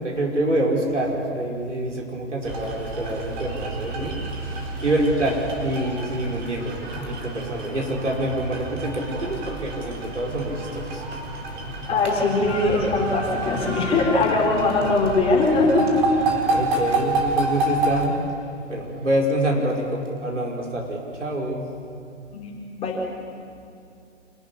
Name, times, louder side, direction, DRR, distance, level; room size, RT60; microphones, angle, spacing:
voice 1, 0.0-11.0 16.5-18.2 18.7-21.6, right 1 dB, 75° right, -1 dB, 5.3 m, -26 dB
sound 1, 2.4-18.1, right 2 dB, 40° right, 4.3 m, -29 dB
voice 2, 11.9-16.4 22.3-23.0, left 3 dB, 15° left, -2 dB, 4.1 m, -21 dB
26.5 x 13.0 x 9.9 m, 2.4 s
figure-of-eight pair, 130°, 36 cm